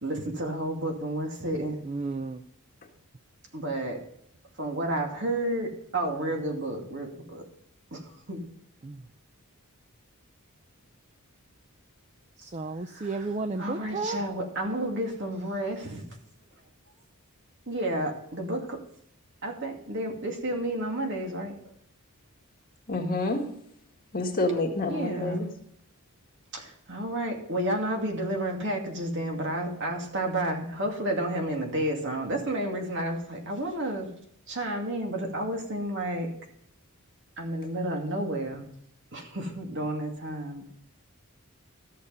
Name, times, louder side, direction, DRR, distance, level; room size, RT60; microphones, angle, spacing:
voice 1, 0.0-1.8 3.5-4.0 4.6-7.4 7.9-8.0 8.3-8.4 12.9-16.0 17.7-18.8 19.4-21.7 24.8-25.5 26.5-34.1 34.5-36.3 37.4-38.6 39.1-40.7, right 1 dB, 55° right, 2 dB, 2.4 m, -31 dB
voice 2, 1.9-2.4 8.8-9.0 12.4-14.2, right 3 dB, 30° right, 9 dB, 0.5 m, -33 dB
voice 3, 22.9-23.4 24.1-25.5, left 2 dB, 40° left, 1 dB, 1.9 m, -28 dB
14.0 x 6.6 x 5.5 m, 0.67 s
head